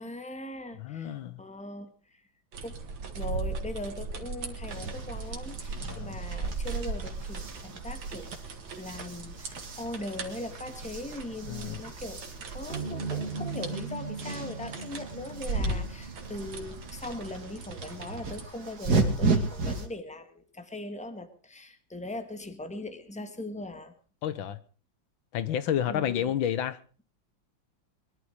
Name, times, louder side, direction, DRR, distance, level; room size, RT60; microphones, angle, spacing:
voice 1, 0.0-2.2 2.6-2.8 3.1-8.3 8.8-12.2 12.5-23.9 25.9-26.3, left 2 dB, 5° left, 1.5 m, -40 dB
voice 2, 0.8-1.4 5.8-6.2 11.5-11.8 24.2-24.6 25.3-26.8, left 10 dB, 90° left, 1.8 m, -30 dB
sound 1, 2.5-18.5, right 4 dB, 80° right, 2.6 m, -39 dB
sound 2, 4.6-19.9, right 3 dB, 55° right, 2.6 m, -35 dB
sound 3, 12.7-17.3, right 4 dB, 25° left, 3.1 m, -38 dB
22.0 x 11.5 x 5.1 m
omnidirectional pair, 2.1 m